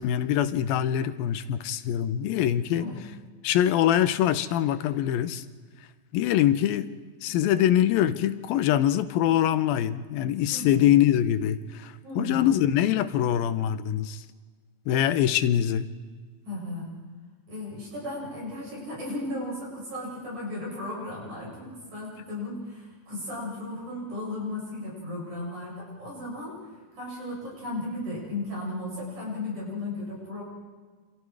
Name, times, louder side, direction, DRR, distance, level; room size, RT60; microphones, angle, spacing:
voice 1, 0.0-2.9 3.4-5.5 6.1-6.9 7.2-14.2 14.9-15.9, left 11 dB, 85° left, 12 dB, 2.6 m, -24 dB
voice 2, 10.5-10.8 12.0-12.5 16.4-16.9 17.5-26.6 27.0-30.4, left 2 dB, 55° right, -4 dB, 9.2 m, -35 dB
28.0 x 27.5 x 4.8 m, 1.5 s
omnidirectional pair, 4.2 m